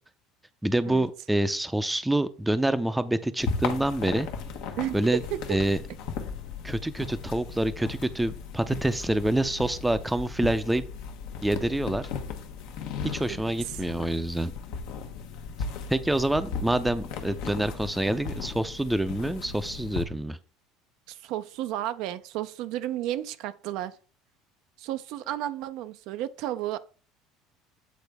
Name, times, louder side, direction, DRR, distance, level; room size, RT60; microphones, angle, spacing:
voice 1, 0.6-4.3 4.9-5.2 5.5-5.8 6.6-10.8 11.4-12.1 13.0-14.5 15.9-20.4, right 1 dB, 5° right, 0.5 m, -27 dB
sound 1, 3.4-20.0, left 5 dB, 75° left, 0.9 m, -36 dB
voice 2, 4.8-5.4 13.3-13.4 13.6-13.8 21.1-24.0 24.8-26.8, right 13 dB, 70° right, 0.4 m, -32 dB
8.3 x 3.9 x 3.4 m
supercardioid pair, 100°, 0 cm